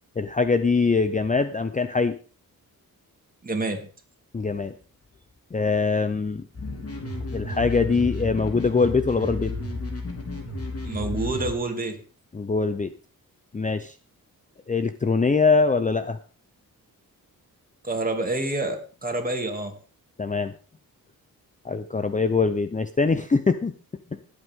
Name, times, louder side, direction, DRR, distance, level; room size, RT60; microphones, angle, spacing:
voice 1, 0.2-2.2 4.3-4.7 5.5-6.5 7.3-9.5 12.3-12.9 13.5-13.9 14.7-16.2 20.2-20.5 21.6-23.7, left 4 dB, 20° left, 10 dB, 0.7 m, -23 dB
voice 2, 3.4-3.9 10.8-12.0 17.8-19.7, right 2 dB, 25° right, 4 dB, 2.7 m, -28 dB
sound 1, 6.5-11.5, left 2 dB, 40° left, 3.5 m, -32 dB
19.0 x 8.3 x 3.7 m, 0.37 s
wide cardioid pair, 100°, 35 cm